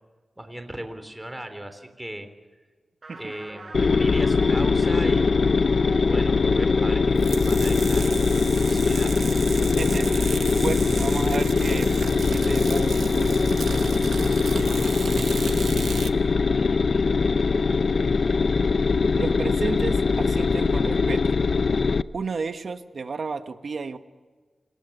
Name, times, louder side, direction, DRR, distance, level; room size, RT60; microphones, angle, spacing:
voice 1, 0.4-2.3 3.2-5.4 5.9-8.1 8.5-9.1, right 1 dB, 10° right, 8 dB, 3.5 m, -37 dB
sound 1, 3.0-15.6, right 3 dB, 45° right, 5.8 m, -39 dB
sound 2, 3.7-22.0, left 4 dB, 60° left, 0.6 m, -22 dB
sound 3, 7.2-16.1, right 6 dB, 90° right, 1.0 m, -34 dB
voice 2, 10.6-11.9 12.3-13.4 19.1-21.3 22.1-24.0, right 4 dB, 65° right, 8 dB, 1.5 m, -32 dB
28.0 x 19.0 x 6.8 m, 1.4 s
cardioid pair, 65°, 0 cm